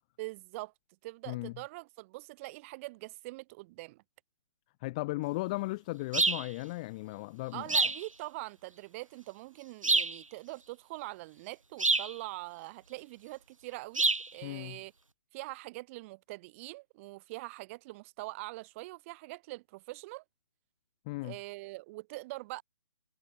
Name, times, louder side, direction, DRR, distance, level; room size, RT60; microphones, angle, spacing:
voice 1, 0.2-0.7 1.0-4.0 7.5-14.0 14.3-14.9 15.3-20.2 21.2-22.6, right 22 dB, 25° right, 3.3 m, -43 dB
voice 2, 4.8-7.6 14.4-14.8 21.1-21.4, left 22 dB, 15° left, 0.4 m, -36 dB
sound 1, 6.1-6.5 7.7-8.0 9.8-10.2 11.8-12.1 13.9-14.3, right 3 dB, 85° right, 1.0 m, -26 dB
figure-of-eight pair, 140°, 16 cm